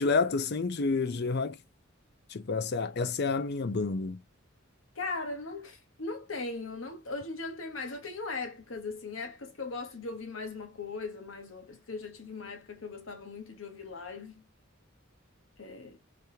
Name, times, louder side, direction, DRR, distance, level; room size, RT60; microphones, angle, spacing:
voice 1, 0.0-1.6 2.3-4.2, left 4 dB, 50° left, 0.5 m, -29 dB
voice 2, 5.0-14.4 15.6-16.0, left 3 dB, 70° left, 1.1 m, -39 dB
3.5 x 3.1 x 2.7 m
head